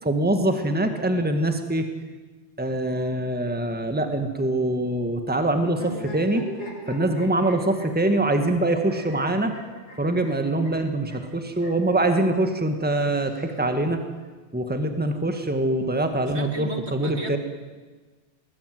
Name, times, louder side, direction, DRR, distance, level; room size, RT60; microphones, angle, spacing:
voice 1, 0.0-1.9 2.6-6.5 6.9-9.6 10.0-14.0 14.5-17.4, right 1 dB, 10° right, 7 dB, 1.7 m, -24 dB
sound 1, 5.7-11.9 12.9-14.0, left 1 dB, 70° left, 6.1 m, -41 dB
voice 2, 16.3-17.4, right 2 dB, 70° right, 4 dB, 3.0 m, -35 dB
21.0 x 20.5 x 9.4 m, 1.3 s
omnidirectional pair, 1.2 m